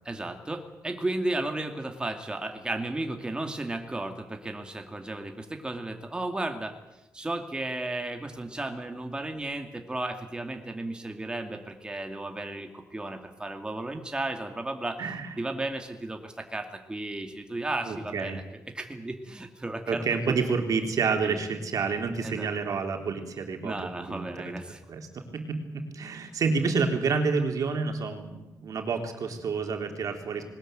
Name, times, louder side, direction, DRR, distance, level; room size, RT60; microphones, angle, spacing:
voice 1, 0.0-6.8 7.1-15.0 15.4-18.4 18.7-20.4 21.2-21.4 22.2-22.5 23.6-24.8, right 2 dB, 15° right, 5 dB, 2.3 m, -34 dB
voice 2, 17.9-18.4 19.9-30.4, right 5 dB, 65° right, 5 dB, 3.7 m, -29 dB
21.0 x 20.5 x 9.2 m, 0.96 s
wide cardioid pair, 145°, 6 cm